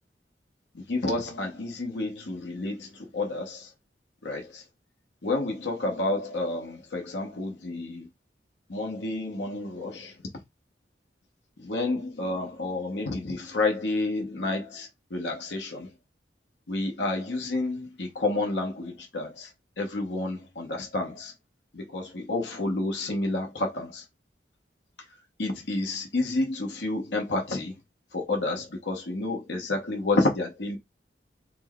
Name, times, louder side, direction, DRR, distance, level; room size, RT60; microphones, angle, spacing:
voice 1, 0.9-2.9 3.1-3.7 4.2-4.6 5.2-8.1 8.7-10.1 11.6-15.9 16.7-19.5 19.8-21.3 21.7-24.0 25.4-27.7 28.1-30.8, left 2 dB, 85° left, 1.1 m, -30 dB
4.4 x 2.1 x 4.3 m
head